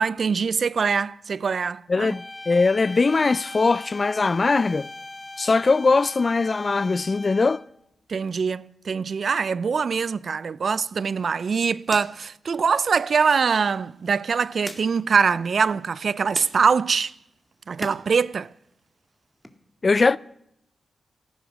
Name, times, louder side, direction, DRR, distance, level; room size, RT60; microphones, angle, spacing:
voice 1, 0.0-2.1 8.1-17.1 17.7-18.5, right 5 dB, 65° right, 0.5 m, -23 dB
voice 2, 1.9-4.9 5.4-7.6 19.8-20.2, left 4 dB, 45° left, 0.5 m, -21 dB
sound 1, 2.1-7.8, left 2 dB, 25° left, 0.8 m, -40 dB
sound 2, 10.8-18.0 18.4-19.5, left 1 dB, 10° left, 2.1 m, -45 dB
15.5 x 13.0 x 6.3 m
cardioid pair, 45°, 0 cm